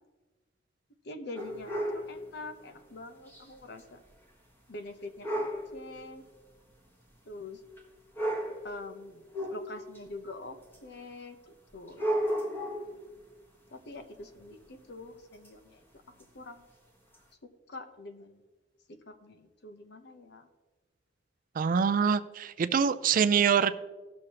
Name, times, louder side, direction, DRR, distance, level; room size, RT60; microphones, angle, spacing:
voice 1, 1.0-4.0 4.7-6.2 7.3-7.6 8.6-9.2 9.5-12.0 13.7-15.8 16.3-16.6 17.7-18.4 18.9-20.5, left 2 dB, 60° left, 7 dB, 0.9 m, -45 dB
sound 1, 1.3-2.1 3.3-3.4 3.8-3.9 5.2-5.7 6.7-6.8 7.8-7.9 8.2-8.7 9.3-10.0 10.7-10.8 11.9-13.0 15.4-15.5 16.2-16.3 17.1-17.2, equal, 10° left, 1.4 m, -32 dB
voice 2, 21.6-23.7, right 6 dB, 45° right, 13 dB, 0.4 m, -25 dB
17.0 x 6.4 x 2.9 m, 1.3 s
head